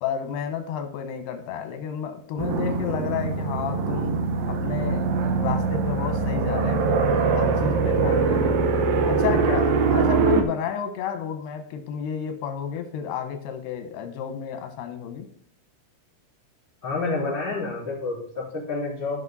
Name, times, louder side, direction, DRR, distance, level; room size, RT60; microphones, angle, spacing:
voice 1, 0.0-4.2 4.5-5.1 5.4-6.9 7.3-8.6 9.1-15.3, left 8 dB, 85° left, 7 dB, 3.2 m, -31 dB
sound 1, 2.4-10.4, right 4 dB, 85° right, 1.6 m, -23 dB
voice 2, 16.8-19.2, left 3 dB, 15° left, -7 dB, 3.9 m, -29 dB
13.5 x 5.9 x 4.1 m, 0.63 s
omnidirectional pair, 4.6 m